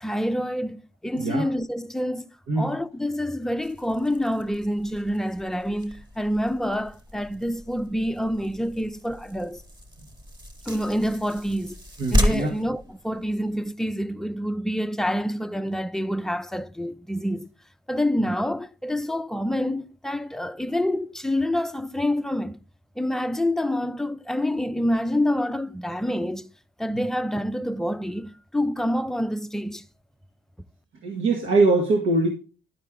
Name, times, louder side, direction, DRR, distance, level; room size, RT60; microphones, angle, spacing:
voice 1, 0.0-9.6 10.7-11.8 12.1-17.5 17.9-22.6 23.0-26.5 26.8-29.8, equal, ahead, 0.5 m, -27 dB
sound 1, 3.6-13.7, equal, 20° right, 1.2 m, -33 dB
voice 2, 12.0-12.5 26.9-27.0 31.0-32.3, right 3 dB, 75° right, 1.5 m, -22 dB
11.5 x 4.5 x 3.7 m
cardioid pair, 90°, 20 cm